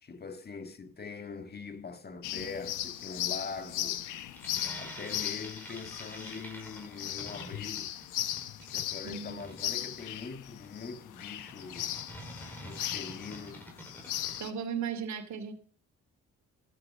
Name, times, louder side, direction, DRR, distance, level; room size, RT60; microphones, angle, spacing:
voice 1, 0.0-4.0 4.8-7.9 8.7-11.9 12.6-13.7, left 4 dB, 30° left, 1.7 m, -42 dB
sound 1, 2.2-14.5, left 12 dB, 85° left, 1.1 m, -38 dB
sound 2, 4.3-14.4, right 1 dB, 5° left, 5.1 m, -47 dB
voice 2, 9.0-9.4 14.4-15.5, right 7 dB, 65° right, 2.8 m, -36 dB
14.5 x 12.0 x 5.4 m
cardioid pair, 90°, 30 cm